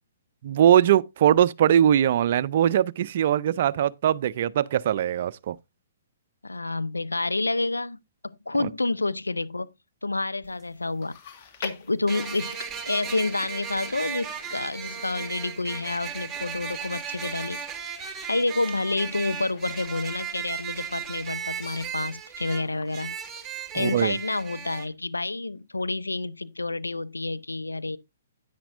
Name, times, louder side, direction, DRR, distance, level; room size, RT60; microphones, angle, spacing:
voice 1, 0.4-5.6 8.6-8.7 23.8-24.2, right 10 dB, 50° right, 0.5 m, -21 dB
voice 2, 6.4-8.0 8.2-9.7 10.0-11.2 11.6-12.6 12.9-17.6 18.3-23.1 23.7-28.0, left 2 dB, 90° left, 0.6 m, -29 dB
sound 1, 10.4-10.5 12.1-24.9, right 7 dB, 15° right, 1.5 m, -36 dB
Chewing mastication, 11.0-24.6 24.9-25.0 25.8-25.9, left 6 dB, 45° left, 1.7 m, -47 dB
10.0 x 9.6 x 2.5 m
figure-of-eight pair, 125°, 0 cm